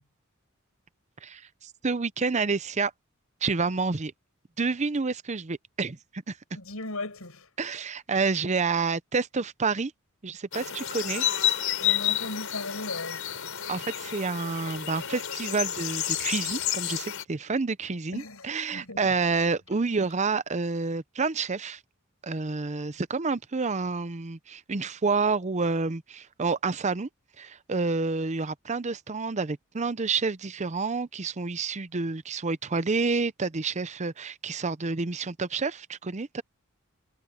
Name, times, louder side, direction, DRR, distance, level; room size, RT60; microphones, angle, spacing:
voice 1, 1.2-2.9 3.4-4.1 4.6-6.3 7.6-9.9 10.2-11.2 13.7-21.8 22.2-27.1 27.4-36.4, right 4 dB, 35° right, 0.7 m, -29 dB
voice 2, 6.5-7.5 11.8-13.2 18.1-19.1, left 2 dB, 85° left, 6.8 m, -37 dB
sound 1, 10.5-17.2, left 11 dB, 70° left, 6.2 m, -30 dB
head